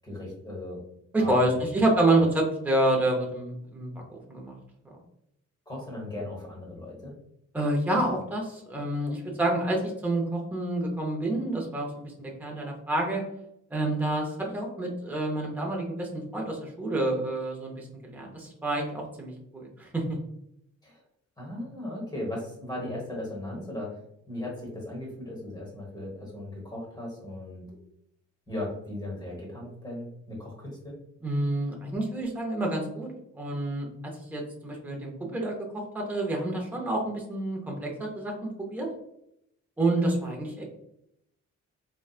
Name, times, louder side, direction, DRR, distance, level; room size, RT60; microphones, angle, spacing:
voice 1, 0.0-0.8 1.2-1.6 5.7-7.1 20.8-21.0 21.4-24.0 24.3-27.8 28.5-30.9, left 1 dB, 15° left, -3 dB, 1.2 m, -37 dB
voice 2, 1.1-4.5 7.5-10.2 10.5-13.2 13.7-20.0 31.2-33.1 33.3-33.9 34.3-35.7 35.9-38.9 39.8-40.6, right 1 dB, 5° right, -1 dB, 0.6 m, -28 dB
4.2 x 2.3 x 2.4 m, 0.77 s
wide cardioid pair, 165°, 29 cm